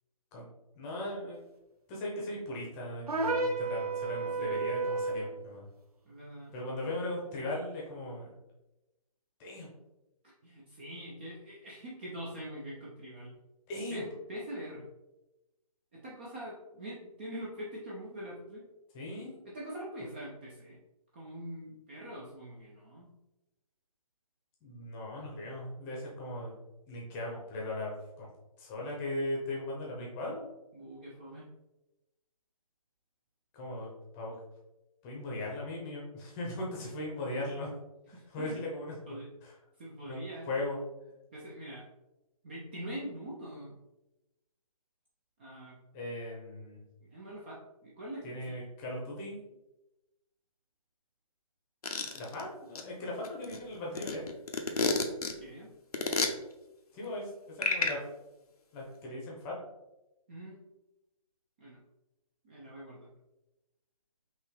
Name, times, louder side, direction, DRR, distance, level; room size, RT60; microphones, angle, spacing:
voice 1, 0.7-1.4 1.9-5.7 6.5-8.3 9.4-9.7 13.7-14.0 18.9-19.4 24.6-26.6 26.9-28.3 28.6-30.4 33.5-34.3 35.0-37.7 38.1-39.5 40.0-40.2 40.5-40.8 45.9-46.8 48.2-49.4 52.1-54.2 56.9-58.1 58.7-59.6, left 1 dB, 15° left, -3 dB, 0.8 m, -38 dB
sound 1, 3.1-5.3, right 3 dB, 80° right, 0.8 m, -31 dB
voice 2, 4.2-4.8 6.1-6.6 10.4-13.3 13.9-14.0 14.3-14.9 15.9-18.6 19.4-20.8 21.1-23.1 30.7-31.5 38.1-38.6 39.1-39.3 39.8-40.5 41.3-41.8 42.4-43.8 45.4-45.8 47.0-48.6 55.4-55.7 60.3-60.6 61.6-61.8 62.4-63.1, equal, 20° right, -5 dB, 0.5 m, -43 dB
sound 2, 51.8-52.4 52.7-52.8 53.2-55.3 55.9-56.3 57.6-57.9, left 3 dB, 85° left, 0.8 m, -29 dB
5.3 x 2.9 x 3.2 m, 0.98 s
hypercardioid pair, 160°, 19 cm